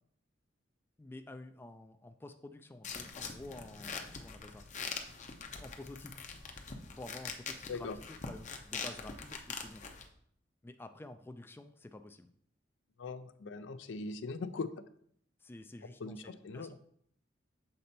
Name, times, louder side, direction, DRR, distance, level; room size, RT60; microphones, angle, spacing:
voice 1, 1.0-4.6 5.6-6.3 7.0-9.8 10.6-12.3 15.4-16.7, left 2 dB, 10° left, 8 dB, 0.3 m, -50 dB
sound 1, 2.8-10.1, left 5 dB, 40° left, 0.7 m, -43 dB
voice 2, 13.0-14.7 16.0-16.7, left 4 dB, 75° left, 12 dB, 0.5 m, -40 dB
6.7 x 4.3 x 4.2 m, 0.66 s
head